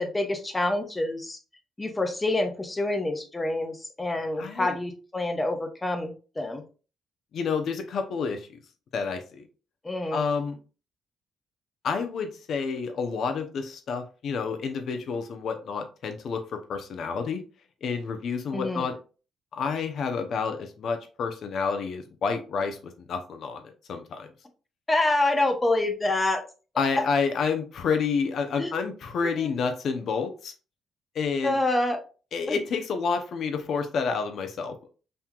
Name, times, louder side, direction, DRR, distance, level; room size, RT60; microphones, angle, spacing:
voice 1, 0.0-1.4 1.8-6.6 9.8-10.2 18.5-18.8 24.9-26.4 26.9-27.1 28.6-28.7 29.2-29.5 31.4-32.0 32.5-32.6, left 2 dB, 20° left, 6 dB, 0.9 m, -27 dB
voice 2, 4.4-4.8 7.3-8.6 8.9-9.5 10.1-10.6 11.8-17.4 17.8-19.0 19.5-23.6 23.9-24.3 26.8-30.5 31.1-31.6 32.3-34.9, left 5 dB, 65° left, 6 dB, 0.7 m, -29 dB
5.5 x 3.0 x 2.3 m, 0.35 s
cardioid pair, 90°, 0 cm